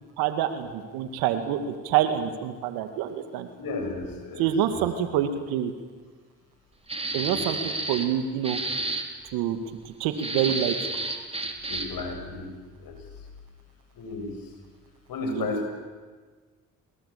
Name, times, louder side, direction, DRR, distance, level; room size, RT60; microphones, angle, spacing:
voice 1, 0.2-3.5 4.4-5.7 7.1-8.6 9.3-9.6 9.8-10.7 15.3-15.5, right 10 dB, 85° right, 8 dB, 2.3 m, -27 dB
voice 2, 3.6-4.8 11.7-12.5 12.8-13.0 13.9-14.4 15.1-15.7, left 3 dB, 70° left, 4 dB, 7.0 m, -33 dB
sound 1, 6.9-8.1 8.4-9.1 10.2-12.0, right 2 dB, 15° right, 3.9 m, -30 dB
24.0 x 20.5 x 8.6 m, 1.4 s
supercardioid pair, 55°, 36 cm